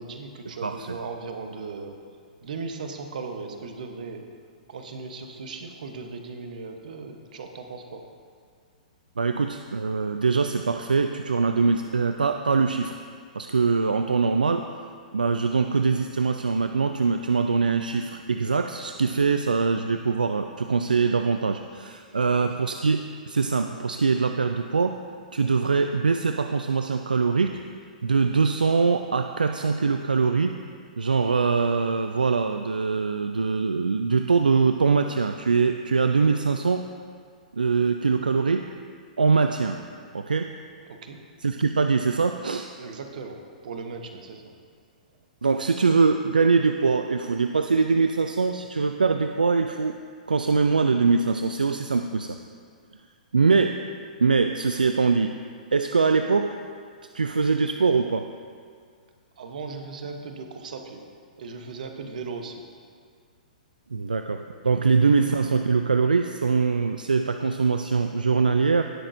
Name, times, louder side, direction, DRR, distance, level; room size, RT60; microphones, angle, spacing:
voice 1, 0.0-2.0 2.4-4.2 4.7-8.0 22.1-22.5 40.9-41.2 42.8-44.5 59.4-61.0 61.4-62.6, right 4 dB, 65° right, 5 dB, 1.0 m, -37 dB
voice 2, 0.6-1.0 9.2-13.0 13.3-14.7 15.1-23.0 23.3-25.0 25.3-27.6 28.0-30.5 31.0-36.8 37.5-38.7 39.2-39.8 40.1-40.5 41.4-42.7 45.4-49.9 50.3-52.4 53.3-53.8 54.2-55.3 55.7-56.6 57.1-58.3 63.9-68.8, right 4 dB, 90° right, 7 dB, 0.4 m, -23 dB
17.5 x 6.1 x 2.7 m, 2.1 s
hypercardioid pair, 120°, 5 cm